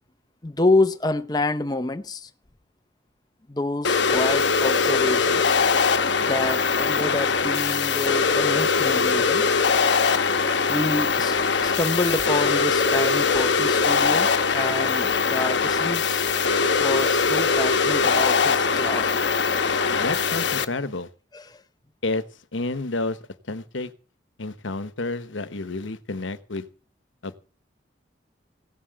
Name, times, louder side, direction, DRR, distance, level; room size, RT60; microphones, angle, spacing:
voice 1, 0.4-2.3 3.5-5.6 6.2-9.5 10.7-16.2 16.8-19.1 21.3-21.6, left 2 dB, 20° left, 0.7 m, -27 dB
sound 1, 3.8-20.6, left 5 dB, 75° left, 1.0 m, -21 dB
voice 2, 19.9-21.1 22.0-23.2 23.5-23.9 24.4-26.7 27.2-27.4, left 2 dB, 90° left, 1.2 m, -30 dB
16.5 x 7.7 x 7.8 m
head